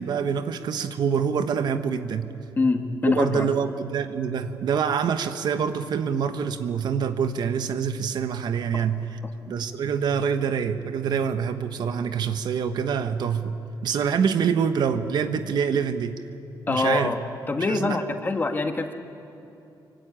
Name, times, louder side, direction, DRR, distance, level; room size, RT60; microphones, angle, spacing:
voice 1, 0.0-2.3 3.1-9.0 9.5-13.6 13.8-16.2 16.7-17.1 17.7-18.0, right 7 dB, 65° right, 9 dB, 1.2 m, -25 dB
voice 2, 2.6-3.5 9.2-9.3 16.7-17.2 17.5-18.9, left 3 dB, 25° left, 5 dB, 1.6 m, -24 dB
25.0 x 24.5 x 9.0 m, 2.8 s
cardioid pair, 145°, 8 cm